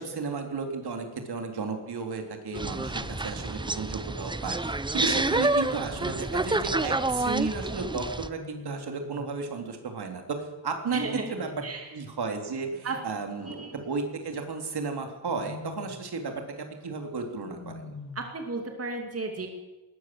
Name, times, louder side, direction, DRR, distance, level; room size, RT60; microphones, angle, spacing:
voice 1, 0.0-11.0 11.3-11.5 11.9-17.9, right 4 dB, 75° right, 4 dB, 3.5 m, -33 dB
Wild animals, 1.0-1.4 2.6-3.3 5.6-6.6 8.3-9.4 10.9-11.8 13.4-14.5 15.2-16.1 17.4-18.4, left 4 dB, 45° left, 6.7 m, -45 dB
sound 1, 2.5-8.3, right 2 dB, 10° right, 0.7 m, -28 dB
voice 2, 10.9-11.3 11.6-11.9 12.8-13.0 13.4-13.7 18.1-19.5, right 3 dB, 35° right, 3 dB, 2.5 m, -34 dB
20.0 x 19.5 x 7.8 m, 1.2 s
wide cardioid pair, 180°, 39 cm